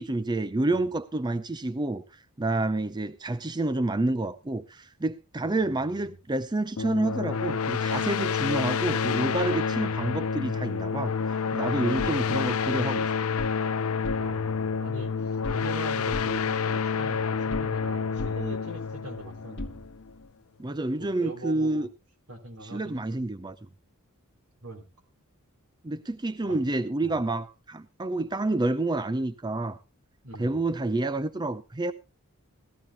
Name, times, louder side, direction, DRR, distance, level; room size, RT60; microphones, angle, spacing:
voice 1, 0.0-2.0 2.4-13.1 20.6-21.9 22.6-23.6 25.8-29.8 30.4-31.9, right 2 dB, 20° right, 0.6 m, -29 dB
voice 2, 5.4-6.2 9.7-10.2 14.1-19.8 21.0-21.9 22.3-23.0 23.4-23.5 24.6-24.8 26.4-26.6 27.0-27.2 30.2-30.7, right 2 dB, 75° right, 3.5 m, -42 dB
sound 1, 6.8-20.1, left 6 dB, 75° left, 0.6 m, -28 dB
sound 2, 13.4-13.6 13.9-14.6 14.9-15.8 16.1-17.9 18.2-20.3, left 1 dB, 55° left, 1.4 m, -40 dB
18.0 x 14.0 x 2.3 m
head